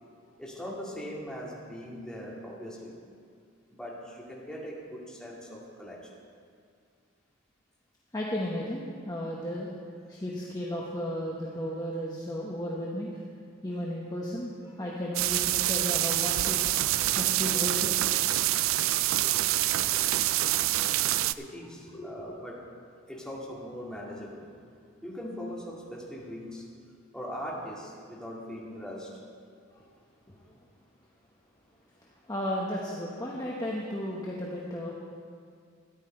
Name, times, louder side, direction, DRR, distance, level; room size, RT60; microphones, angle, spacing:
voice 1, 0.4-3.0 3.7-6.1 21.4-22.6 23.1-24.5 25.0-26.7 27.1-29.1, equal, 5° left, -5 dB, 2.2 m, -40 dB
voice 2, 8.1-9.7 10.1-13.1 13.6-16.6 17.2-18.1 18.7-18.9 19.2-19.8 21.9-22.1 29.7-29.8 30.3-30.4 32.3-34.9, equal, 20° left, -4 dB, 1.1 m, -34 dB
sound 1, 15.1-21.3, right 15 dB, 75° right, 0.3 m, -26 dB
13.5 x 10.5 x 4.4 m, 2.3 s
head